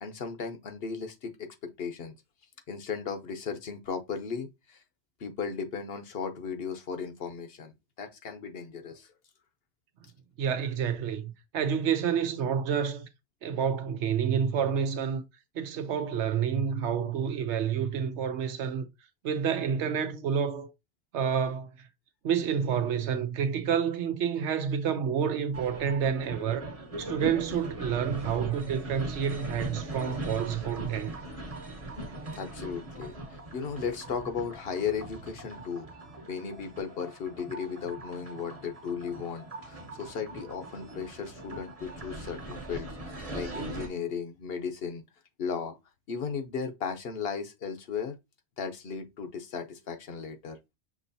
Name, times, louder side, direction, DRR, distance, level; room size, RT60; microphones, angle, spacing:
voice 1, 0.0-2.1 2.7-4.8 5.2-7.7 8.0-9.1 32.3-35.9 36.3-42.9 43.3-45.0 45.4-45.8 46.1-48.2 48.6-50.6, left 6 dB, 65° left, 1.0 m, -36 dB
voice 2, 10.4-13.1 13.4-15.2 15.5-18.9 19.2-20.7 21.1-21.9 22.2-26.7 27.0-31.1, right 7 dB, 85° right, 1.0 m, -29 dB
sound 1, 25.5-43.9, right 1 dB, 35° right, 1.0 m, -40 dB
6.1 x 3.0 x 2.7 m
omnidirectional pair, 1.1 m